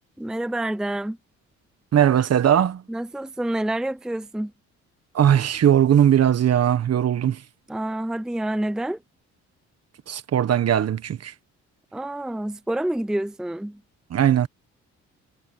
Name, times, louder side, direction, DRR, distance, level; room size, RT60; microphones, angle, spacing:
voice 1, 0.2-1.2 2.9-4.5 7.7-9.0 11.9-13.8, right 1 dB, ahead, 0.6 m, -28 dB
voice 2, 1.9-2.8 5.1-7.4 10.1-11.3 14.1-14.5, right 10 dB, 55° right, 1.3 m, -19 dB
cardioid pair, 90°, 30 cm